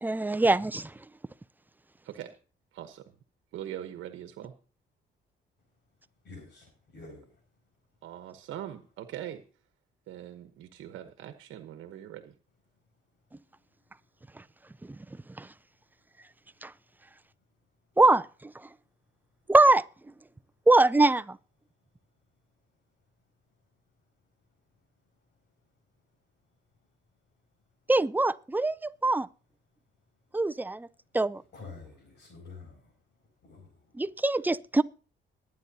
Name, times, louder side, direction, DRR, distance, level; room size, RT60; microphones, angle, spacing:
voice 1, 0.0-0.9 15.4-15.5 16.6-16.7 18.0-18.5 19.5-19.8 20.7-21.4 27.9-29.3 30.3-30.9 31.1-31.4 33.9-34.8, right 2 dB, 10° right, 0.5 m, -23 dB
voice 2, 2.7-3.1 3.5-4.5 8.0-9.4 10.1-12.3, right 11 dB, 80° right, 1.1 m, -41 dB
voice 3, 6.2-7.4 25.3-25.4 31.3-34.1, left 3 dB, 55° left, 6.4 m, -49 dB
21.5 x 9.4 x 2.8 m
cardioid pair, 90°, 20 cm